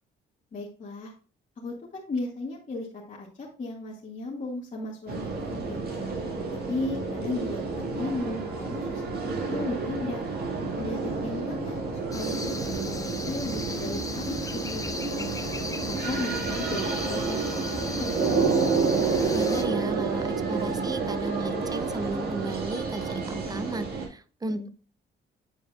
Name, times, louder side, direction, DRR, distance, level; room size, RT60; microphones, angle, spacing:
voice 1, 0.5-1.1 1.6-6.0 6.7-10.2 10.8-11.8 12.1-14.4 14.7-15.4 15.9-18.6 24.4-24.7, left 2 dB, 40° left, -5 dB, 2.0 m, -35 dB
sound 1, 5.1-24.1, right 4 dB, 50° right, 2.0 m, -29 dB
sound 2, 12.1-19.6, left 2 dB, 15° left, 1.0 m, -37 dB
voice 2, 19.3-24.7, right 2 dB, 20° right, 13 dB, 0.5 m, -34 dB
8.9 x 4.7 x 2.5 m, 0.39 s
cardioid pair, 90°, 20 cm